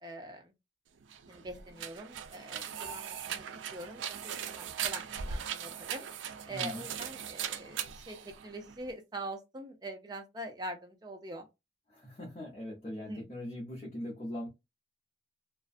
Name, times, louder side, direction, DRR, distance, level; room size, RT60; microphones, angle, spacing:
voice 1, 0.0-0.5 1.3-6.1 6.5-11.5 13.0-13.2, right 1 dB, 20° right, 0.5 m, -44 dB
sound 1, 1.0-8.9, right 8 dB, 85° right, 0.4 m, -39 dB
voice 2, 6.5-6.9 11.9-14.5, left 1 dB, 35° left, 0.7 m, -41 dB
2.4 x 2.1 x 2.4 m
head